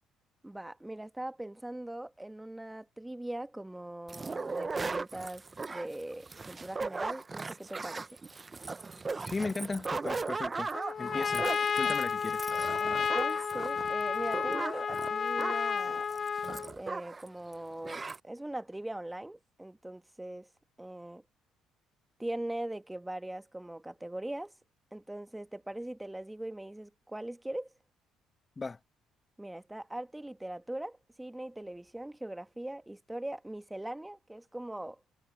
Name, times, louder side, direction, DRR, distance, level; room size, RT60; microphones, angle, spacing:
voice 1, 0.4-5.4 5.7-8.2 11.0-11.3 11.8-12.0 12.8-16.1 16.5-20.5 20.8-21.2 22.2-24.5 24.9-27.7 29.4-35.0, right 1 dB, 10° right, 1.4 m, -41 dB
sound 1, 4.1-17.3 17.5-17.6 17.8-18.2, right 4 dB, 30° right, 0.9 m, -38 dB
voice 2, 9.2-10.7 11.0-11.5 11.8-12.4 28.6-28.8, left 3 dB, 30° left, 1.3 m, -36 dB
Trumpet, 10.7-16.7, left 6 dB, 50° left, 1.0 m, -31 dB
hypercardioid pair, 60°, 0 cm